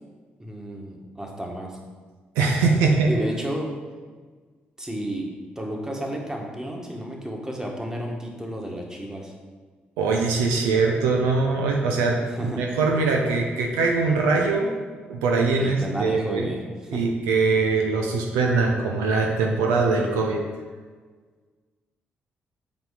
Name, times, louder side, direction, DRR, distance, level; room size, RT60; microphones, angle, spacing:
voice 1, 0.4-1.8 3.1-3.7 4.8-5.3 5.6-9.3 12.3-12.6 15.6-17.0, right 1 dB, 10° right, 0 dB, 1.7 m, -32 dB
voice 2, 2.4-3.1 10.0-14.7 15.1-16.5 16.9-20.4, right 4 dB, 75° right, 1 dB, 0.7 m, -22 dB
8.0 x 4.3 x 4.9 m, 1.5 s
figure-of-eight pair, 40°, 5 cm